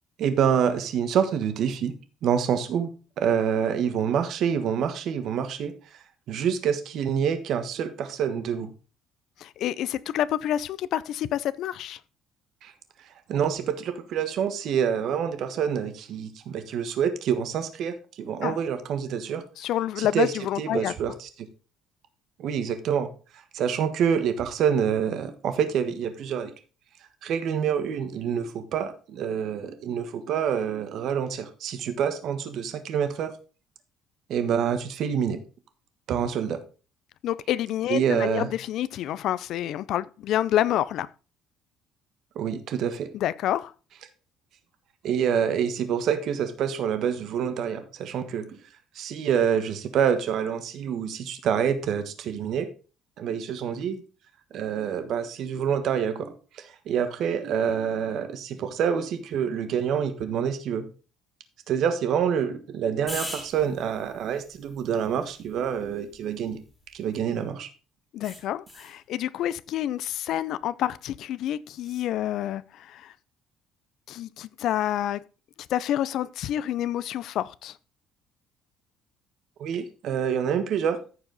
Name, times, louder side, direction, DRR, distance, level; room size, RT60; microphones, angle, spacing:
voice 1, 0.2-1.9 2.2-2.9 3.2-5.7 6.3-8.7 12.6-12.7 13.3-19.4 20.0-21.3 22.4-23.1 23.5-26.5 27.2-33.3 34.3-35.4 36.1-36.6 37.9-38.5 42.3-43.1 45.0-48.6 48.9-52.7 53.2-54.0 54.5-60.9 61.7-66.6 66.9-67.7 79.6-81.0, right 8 dB, 55° right, 1.3 m, -27 dB
voice 2, 9.4-12.0 18.4-18.6 19.6-20.9 37.2-41.1 43.1-43.7 68.1-73.1 74.1-75.2 75.7-77.8, left 12 dB, 60° left, 0.4 m, -28 dB
sound 1, 63.1-67.5 68.2-69.0 71.7-72.1, left 1 dB, 5° left, 2.8 m, -43 dB
14.0 x 4.9 x 4.0 m
cardioid pair, 155°, 0 cm